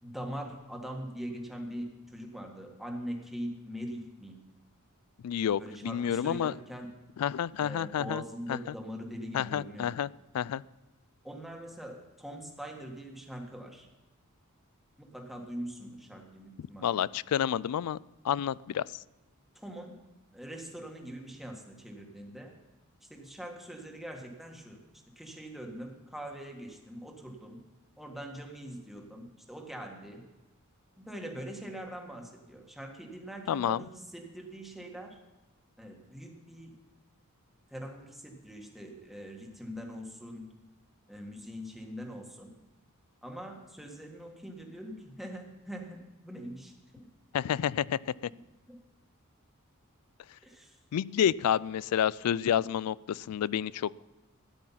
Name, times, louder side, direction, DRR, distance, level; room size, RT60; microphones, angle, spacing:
voice 1, 0.0-4.4 5.6-6.9 7.6-9.9 11.2-13.9 15.0-17.0 19.5-20.0 20.3-22.5 23.0-24.8 25.1-27.6 28.0-30.2 31.0-35.2 35.8-36.8 37.7-40.5 41.1-42.5 43.2-47.1 48.7-48.8 50.4-50.8, equal, ahead, 1 dB, 1.7 m, -42 dB
voice 2, 5.2-6.5 7.2-8.2 8.5-8.7 9.3-10.1 10.3-10.6 16.6-18.0 18.2-18.9 33.5-33.9 47.3-48.0 50.9-53.9, left 9 dB, 80° left, 21 dB, 0.3 m, -29 dB
13.5 x 10.0 x 5.7 m, 1.1 s
head